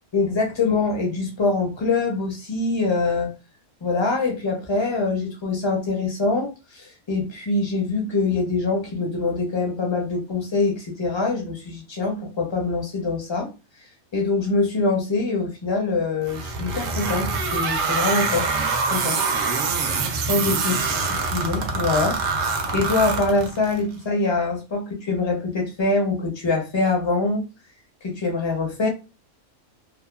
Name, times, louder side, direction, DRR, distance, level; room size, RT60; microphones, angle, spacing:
voice 1, 0.1-3.3 3.8-13.5 14.1-19.3 20.3-20.7 21.3-27.5 28.0-28.9, left 3 dB, 35° left, 1 dB, 0.4 m, -24 dB
sound 1, 16.3-23.8, right 4 dB, 70° right, 0.9 m, -25 dB
2.7 x 2.2 x 2.2 m, 0.28 s
omnidirectional pair, 1.5 m